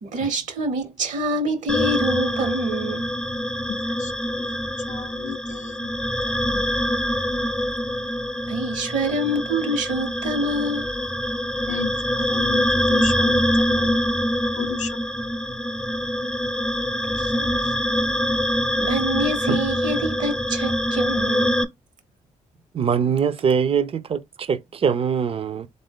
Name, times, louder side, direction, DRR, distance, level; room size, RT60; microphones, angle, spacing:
voice 1, 0.0-3.7 8.5-10.9 17.1-17.7 18.8-21.6, right 1 dB, 70° right, 1.2 m, -26 dB
sound 1, 1.7-21.6, equal, 5° left, 0.4 m, -24 dB
voice 2, 3.7-4.1 4.4-4.6 4.9-6.7 11.7-14.0 14.6-15.0, left 10 dB, 70° left, 0.4 m, -35 dB
voice 3, 22.7-25.7, right 7 dB, 45° right, 0.5 m, -22 dB
3.8 x 2.6 x 3.6 m
cardioid pair, 95°, 13 cm